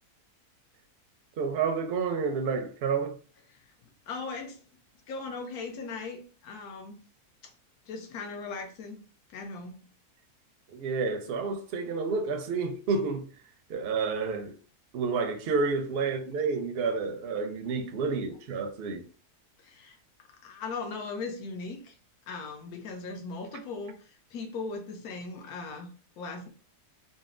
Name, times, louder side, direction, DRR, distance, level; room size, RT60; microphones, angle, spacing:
voice 1, 1.4-3.2 10.7-13.3 13.7-14.6 14.9-19.1, right 4 dB, 65° right, 0.6 m, -30 dB
voice 2, 3.5-4.6 5.1-7.0 7.4-7.5 7.9-9.0 9.3-9.9 19.6-20.0 20.4-22.0 22.3-26.5, left 4 dB, 75° left, 1.2 m, -39 dB
3.9 x 2.0 x 2.5 m
omnidirectional pair, 1.6 m